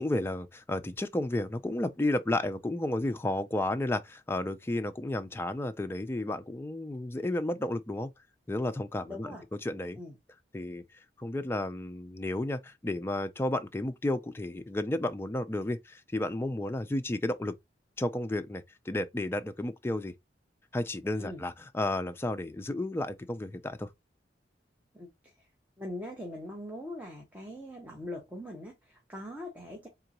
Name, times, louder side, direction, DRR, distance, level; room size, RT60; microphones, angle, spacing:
voice 1, 0.0-8.1 8.5-9.3 9.6-10.0 10.5-10.8 11.2-17.5 18.0-20.1 20.7-23.9, left 1 dB, 15° left, 0.3 m, -32 dB
voice 2, 9.0-9.4 10.0-10.2 21.2-21.4 24.9-25.5 25.8-29.9, left 1 dB, 10° right, 0.7 m, -42 dB
3.7 x 2.9 x 2.8 m
head